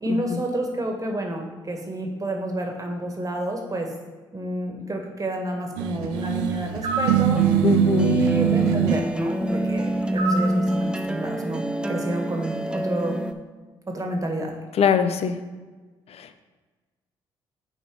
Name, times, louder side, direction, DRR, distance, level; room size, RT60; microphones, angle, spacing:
voice 1, 0.0-3.9 4.3-7.4 8.0-13.2 13.9-14.5, right 1 dB, 30° right, 2 dB, 1.7 m, -29 dB
sound 1, 5.8-9.0, right 10 dB, 90° right, 0.4 m, -22 dB
sound 2, 6.2-13.3, right 1 dB, 10° right, 0.6 m, -27 dB
sound 3, 6.8-7.2 10.2-10.6, right 2 dB, 50° right, 1.4 m, -27 dB
voice 2, 7.6-8.2 14.7-15.4 16.1-16.4, left 7 dB, 55° left, 10 dB, 0.6 m, -23 dB
6.7 x 4.2 x 6.1 m, 1.3 s
hypercardioid pair, 50°, 12 cm